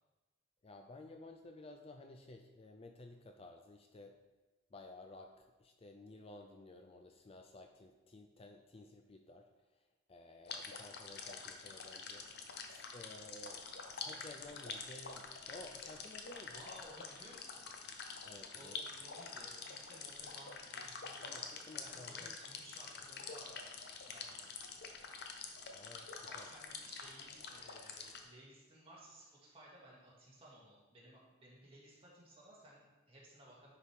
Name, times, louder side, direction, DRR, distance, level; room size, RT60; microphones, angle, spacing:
voice 1, 0.6-4.1 4.7-9.5 10.1-12.2 12.7-16.7 18.2-18.8 21.2-22.4 25.7-26.5, left 2 dB, 30° left, 4 dB, 0.4 m, -54 dB
sound 1, 10.4-28.2, left 5 dB, 55° left, 0.8 m, -47 dB
voice 2, 16.5-17.8 18.5-24.5 26.3-33.7, right 1 dB, 30° right, -6 dB, 2.2 m, -58 dB
10.0 x 4.9 x 3.6 m, 1.2 s
head